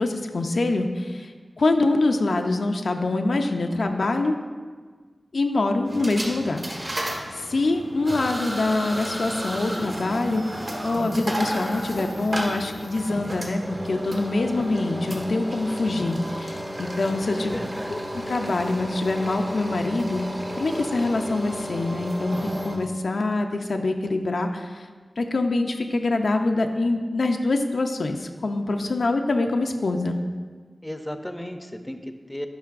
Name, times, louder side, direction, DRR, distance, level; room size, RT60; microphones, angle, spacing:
voice 1, 0.0-1.3 1.6-4.4 5.3-6.6 7.3-10.4 10.8-17.6 17.9-20.3 20.6-22.4 22.6-24.9 25.2-30.2, left 2 dB, 85° left, 4 dB, 0.4 m, -25 dB
sound 1, 5.9-22.8, equal, 45° right, 1.3 m, -32 dB
voice 2, 17.4-17.9 30.8-32.5, left 1 dB, 10° left, 6 dB, 0.5 m, -35 dB
10.0 x 5.1 x 2.4 m, 1.5 s
wide cardioid pair, 55°, 0 cm